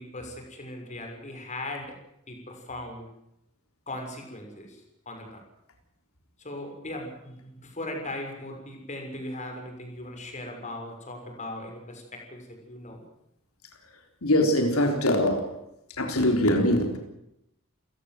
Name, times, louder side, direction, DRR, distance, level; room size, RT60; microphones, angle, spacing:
voice 1, 0.0-1.9 2.3-3.1 3.9-4.8 5.1-5.4 6.4-13.0, left 1 dB, 35° left, 3 dB, 6.4 m, -38 dB
voice 2, 14.2-15.5 16.0-17.0, left 1 dB, 90° left, 4 dB, 3.8 m, -22 dB
29.5 x 16.5 x 7.8 m, 0.83 s
head